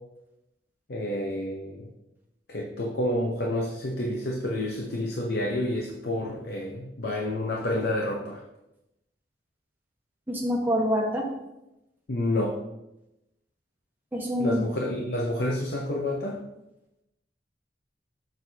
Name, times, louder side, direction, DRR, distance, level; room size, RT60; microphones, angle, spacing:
voice 1, 0.9-1.9 2.5-8.4 12.1-12.6 14.4-16.4, left 1 dB, 65° left, 0 dB, 0.7 m, -29 dB
voice 2, 10.3-11.3 14.1-14.7, equal, 10° right, -2 dB, 1.2 m, -26 dB
6.7 x 6.2 x 2.7 m, 0.91 s
head